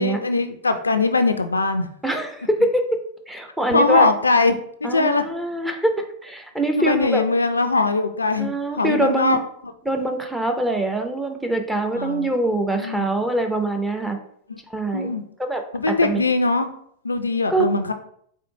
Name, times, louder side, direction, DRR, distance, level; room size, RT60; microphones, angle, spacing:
voice 1, 0.0-1.9 3.7-5.2 6.8-9.4 11.9-12.3 12.7-13.1 14.5-14.6 14.9-15.2 15.7-16.7 17.0-17.9, left 3 dB, 80° left, 9 dB, 0.3 m, -21 dB
voice 2, 2.0-3.0 3.3-4.1 4.8-5.9 6.2-7.2 8.4-9.4 9.9-14.2 14.7-15.1 15.4-16.2 17.5-17.7, right 1 dB, 5° right, 4 dB, 0.6 m, -23 dB
4.3 x 3.6 x 2.7 m, 0.66 s
figure-of-eight pair, 90°, 0 cm